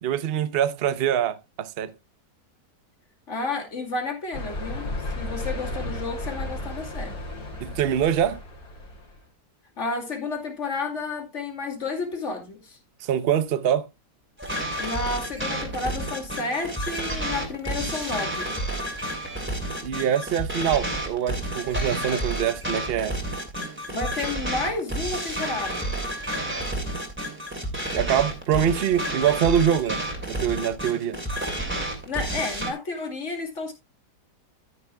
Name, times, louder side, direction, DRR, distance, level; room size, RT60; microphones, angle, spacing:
voice 1, 0.0-1.9 7.6-8.4 13.0-13.9 19.8-23.2 27.9-31.2, right 9 dB, 50° right, 0.7 m, -24 dB
voice 2, 3.3-4.9 5.1-7.2 9.8-12.8 14.8-18.6 23.9-26.0 32.1-33.7, left 3 dB, 45° left, 2.5 m, -31 dB
sound 1, 4.3-9.2, left 1 dB, 70° left, 3.3 m, -34 dB
sound 2, 14.4-32.7, right 1 dB, 5° right, 2.5 m, -30 dB
12.5 x 9.8 x 2.2 m
omnidirectional pair, 1.8 m